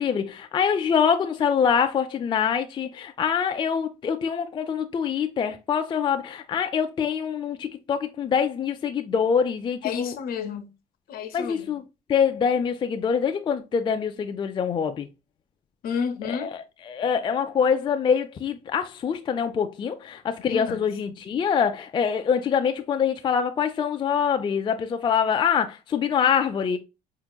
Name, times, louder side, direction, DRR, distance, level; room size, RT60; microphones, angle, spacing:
voice 1, 0.0-10.1 11.3-11.8 12.1-15.1 16.3-26.8, left 7 dB, 30° left, 0.3 m, -25 dB
voice 2, 9.8-10.7 11.1-11.7 15.8-16.5 20.4-20.9, left 7 dB, 65° left, 0.8 m, -31 dB
4.3 x 2.8 x 2.2 m
cardioid pair, 110°, 17 cm